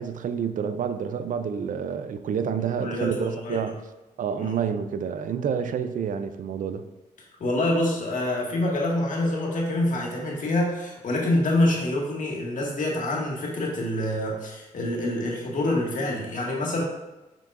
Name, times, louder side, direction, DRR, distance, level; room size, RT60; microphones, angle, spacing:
voice 1, 0.0-3.7 4.2-6.8, right 7 dB, 70° right, 10 dB, 0.5 m, -28 dB
voice 2, 2.8-3.7 4.4-4.6 7.4-16.8, left 1 dB, 65° left, -2 dB, 1.9 m, -26 dB
7.5 x 5.4 x 2.5 m, 1.1 s
cardioid pair, 70°, 14 cm